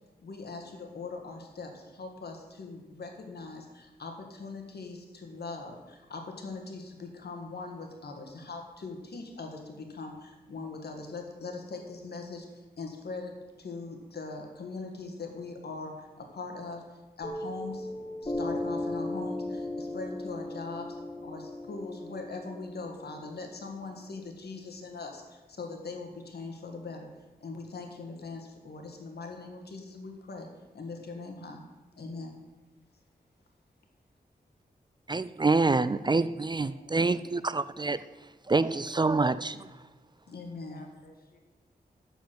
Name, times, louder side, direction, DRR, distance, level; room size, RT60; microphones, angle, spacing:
voice 1, 0.2-17.9 18.2-27.1 27.4-30.5 30.7-31.6 32.0-32.4 40.3-40.8, left 3 dB, 80° left, 3 dB, 1.6 m, -41 dB
Piano, 17.2-24.3, left 2 dB, 30° left, 1.2 m, -37 dB
voice 2, 35.1-38.0 38.5-39.7, right 3 dB, 25° right, 15 dB, 0.4 m, -26 dB
voice 3, 36.0-37.8 40.5-41.4, left 2 dB, 65° left, 3 dB, 1.7 m, -58 dB
7.2 x 7.0 x 7.7 m, 1.2 s
wide cardioid pair, 70°, 16 cm